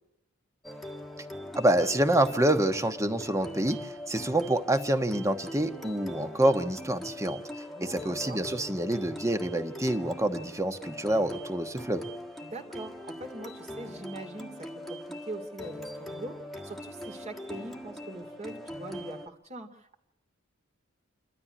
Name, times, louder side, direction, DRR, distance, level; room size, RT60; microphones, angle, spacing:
sound 1, 0.6-19.3, equal, ahead, 1.6 m, -41 dB
voice 1, 1.5-7.4 7.8-12.1, right 1 dB, 15° right, 8 dB, 1.2 m, -27 dB
voice 2, 7.7-8.4 12.4-20.0, right 2 dB, 35° right, 4 dB, 2.6 m, -42 dB
28.5 x 13.0 x 9.9 m, 0.88 s
head